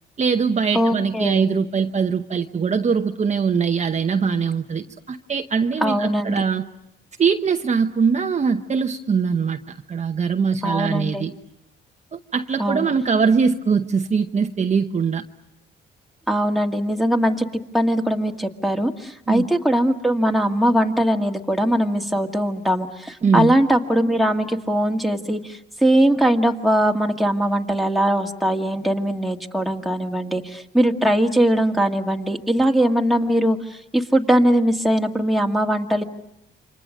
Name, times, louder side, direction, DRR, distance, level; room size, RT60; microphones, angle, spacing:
voice 1, 0.2-6.7 7.2-11.3 12.1-15.2 19.3-19.4 23.2-23.5, right 6 dB, 35° right, 5 dB, 0.9 m, -22 dB
voice 2, 0.7-1.5 5.8-6.4 10.6-11.2 12.6-12.9 16.3-17.5 17.7-36.0, equal, ahead, 2 dB, 1.9 m, -20 dB
29.0 x 25.5 x 6.4 m, 0.83 s
cardioid pair, 90°, 20 cm